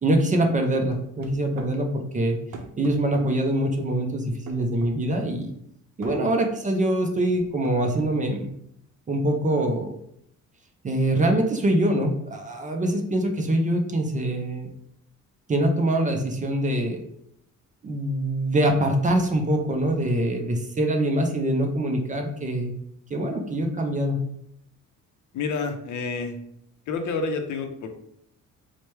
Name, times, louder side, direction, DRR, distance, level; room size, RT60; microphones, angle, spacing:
voice 1, 0.0-2.4 2.8-5.5 6.0-8.5 9.1-9.9 10.8-14.7 15.5-17.0 17.8-22.7 23.1-24.2, right 1 dB, 25° right, 3 dB, 0.4 m, -24 dB
sound 1, 0.9-1.8 2.5-3.3 4.5-5.0 6.0-6.2 7.3-8.1, right 4 dB, 65° right, 0.6 m, -42 dB
voice 2, 25.3-26.4 26.9-27.9, left 4 dB, 65° left, 6 dB, 0.6 m, -29 dB
4.5 x 2.1 x 3.1 m, 0.72 s
cardioid pair, 135°, 32 cm